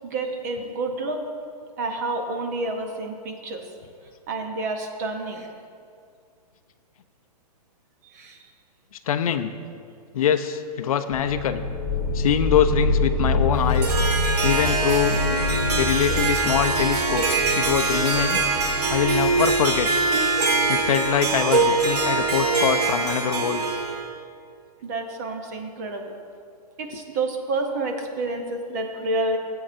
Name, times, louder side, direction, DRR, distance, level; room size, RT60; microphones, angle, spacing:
voice 1, 0.0-1.2 1.8-3.6 4.3-5.5 8.1-8.5 15.5-15.9 24.8-26.1 26.8-29.4, right 2 dB, 25° right, 4 dB, 0.6 m, -29 dB
voice 2, 9.1-9.5 10.1-11.6 12.1-14.0 14.4-15.2 15.8-17.2 17.5-18.5 18.9-19.9 20.7-23.6, left 9 dB, 60° left, 8 dB, 0.5 m, -23 dB
sound 1, 11.1-22.5, left 2 dB, ahead, 0.8 m, -27 dB
Harp, 13.5-24.1, right 3 dB, 90° right, 1.6 m, -23 dB
Piano, 15.1-18.6, left 3 dB, 35° left, 1.8 m, -39 dB
15.0 x 7.7 x 2.6 m, 2.3 s
hypercardioid pair, 175°, 20 cm